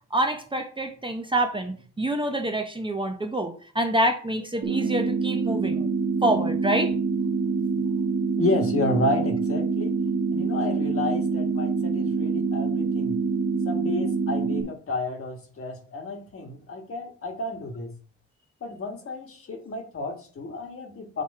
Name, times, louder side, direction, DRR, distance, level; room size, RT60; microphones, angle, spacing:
voice 1, 0.1-5.9 6.2-6.9, right 1 dB, 15° right, 5 dB, 0.8 m, -26 dB
sound 1, 4.6-14.6, right 4 dB, 50° right, 1.4 m, -26 dB
voice 2, 8.4-10.0 10.3-13.2 13.6-17.9 18.6-21.2, left 2 dB, 45° left, 4 dB, 1.5 m, -31 dB
6.7 x 2.9 x 4.7 m, 0.41 s
cardioid pair, 95°, 30 cm